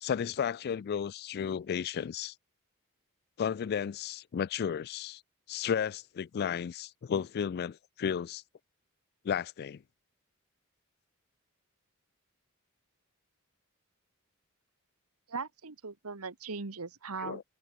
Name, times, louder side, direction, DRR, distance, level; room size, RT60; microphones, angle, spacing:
voice 1, 0.0-2.3 3.4-5.2 5.5-8.4 9.2-9.8 17.2-17.4, left 7 dB, 45° left, 0.3 m, -33 dB
voice 2, 15.3-17.4, right 4 dB, 85° right, 1.4 m, -39 dB
head